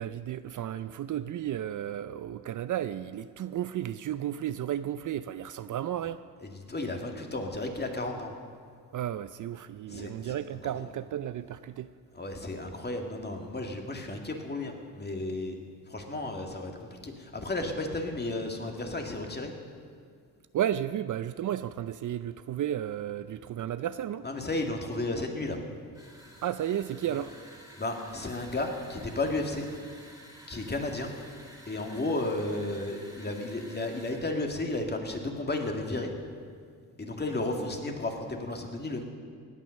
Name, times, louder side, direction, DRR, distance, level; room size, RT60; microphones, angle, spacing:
voice 1, 0.0-6.2 8.9-11.9 20.5-24.3 26.4-27.3, right 11 dB, 50° right, 13 dB, 0.5 m, -33 dB
voice 2, 6.4-8.3 9.9-10.4 10.8-10.9 12.1-15.6 15.9-19.5 24.2-25.6 27.1-27.2 27.8-29.6 30.5-31.1 31.7-36.1 37.0-39.0, left 2 dB, 25° left, 3 dB, 2.2 m, -33 dB
sound 1, 25.9-34.3, right 1 dB, 10° right, 3.1 m, -52 dB
17.0 x 9.3 x 6.4 m, 2.2 s
cardioid pair, 75°, 38 cm